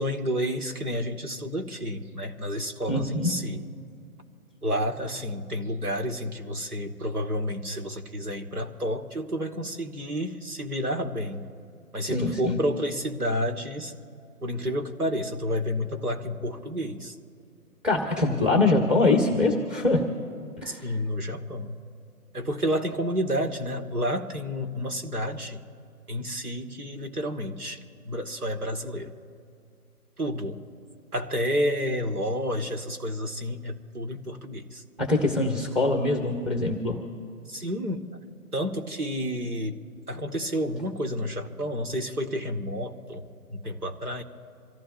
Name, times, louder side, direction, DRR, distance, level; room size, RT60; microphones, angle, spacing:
voice 1, 0.0-3.6 4.6-11.5 11.9-13.9 14.4-17.2 20.7-21.8 22.3-25.6 26.1-29.1 30.2-30.6 31.1-34.8 37.5-38.1 38.5-39.8 40.1-43.2 43.5-44.2, equal, 80° right, 3 dB, 2.0 m, -30 dB
voice 2, 2.9-3.3 12.0-12.6 17.8-20.0 20.6-20.9 35.0-37.0, left 2 dB, ahead, 2 dB, 1.2 m, -23 dB
27.5 x 15.5 x 2.7 m, 2.4 s
figure-of-eight pair, 135°, 44 cm